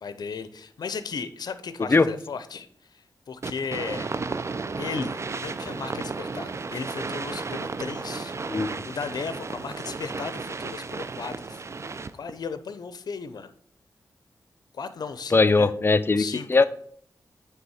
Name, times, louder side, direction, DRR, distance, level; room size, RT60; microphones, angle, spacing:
voice 1, 0.0-4.2 4.8-8.3 8.8-11.7 12.1-13.5 14.7-15.7 16.1-16.6, left 5 dB, 75° left, 11 dB, 0.6 m, -35 dB
sound 1, 3.4-12.3, right 4 dB, 40° right, 0.4 m, -33 dB
voice 2, 15.3-16.2 16.5-16.6, left 3 dB, 35° left, 12 dB, 0.5 m, -19 dB
9.3 x 3.4 x 4.2 m, 0.62 s
cardioid pair, 65°, 7 cm